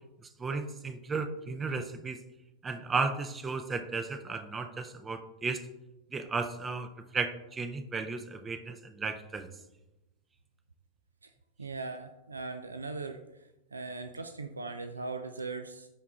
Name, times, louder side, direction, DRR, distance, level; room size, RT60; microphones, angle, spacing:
voice 1, 0.2-2.2 2.6-5.7 6.1-9.5, right 4 dB, 20° right, 8 dB, 0.5 m, -34 dB
voice 2, 11.6-13.2 13.7-15.9, right 3 dB, 75° right, 8 dB, 0.4 m, -39 dB
11.0 x 4.6 x 2.4 m, 0.94 s
figure-of-eight pair, 90°, 0 cm